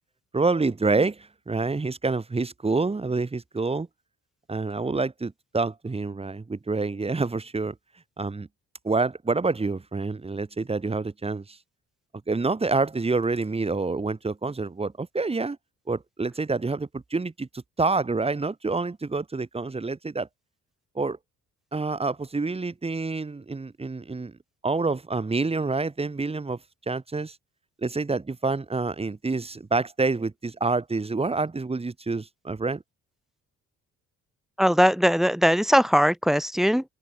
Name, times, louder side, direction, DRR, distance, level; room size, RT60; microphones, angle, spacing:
voice 1, 0.3-3.9 4.5-7.7 8.2-8.5 8.8-11.6 12.3-15.6 15.9-20.3 20.9-21.2 21.7-24.3 24.6-26.6 26.9-27.4 27.8-32.8, right 3 dB, 20° right, 1.7 m, -27 dB
voice 2, 34.6-36.8, equal, ahead, 0.5 m, -20 dB
open air
cardioid pair, 90°, 30 cm